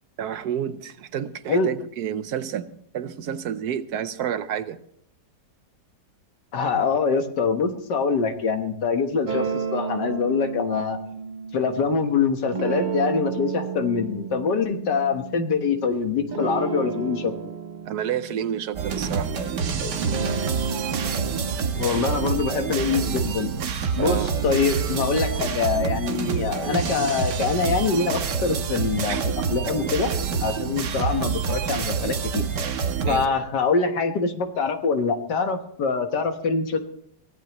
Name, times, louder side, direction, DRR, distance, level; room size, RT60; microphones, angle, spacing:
voice 1, 0.2-4.8 17.9-19.3 24.0-24.4 29.1-29.2 33.0-33.3, right 9 dB, 70° right, 1.3 m, -30 dB
voice 2, 6.5-11.0 11.5-17.3 21.8-23.5 24.0-29.2 29.5-30.1 30.4-32.4 33.1-36.8, left 5 dB, 85° left, 2.0 m, -24 dB
sound 1, 9.3-11.9 12.5-15.9 16.3-19.5 19.9-21.6, right 5 dB, 50° right, 0.5 m, -32 dB
sound 2, 18.7-33.3, right 6 dB, 90° right, 1.7 m, -27 dB
23.5 x 16.5 x 3.1 m
omnidirectional pair, 1.8 m